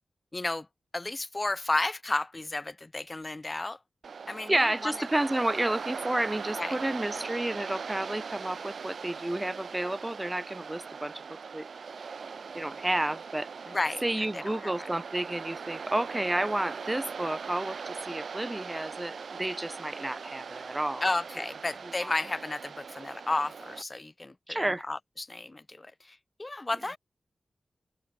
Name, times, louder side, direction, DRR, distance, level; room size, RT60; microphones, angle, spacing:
voice 1, 0.3-0.7 0.9-3.8 4.3-4.9 6.6-6.8 13.7-14.0 14.3-14.9 21.0-27.0, left 2 dB, 25° left, 3.2 m, -33 dB
Waves surf, 4.0-23.8, right 5 dB, 75° right, 6.0 m, -40 dB
voice 2, 4.5-11.2 11.5-11.7 12.5-13.5 14.0-21.1 22.0-22.1 24.5-24.9, right 1 dB, 15° right, 1.0 m, -31 dB
wide cardioid pair, 95°, 0 cm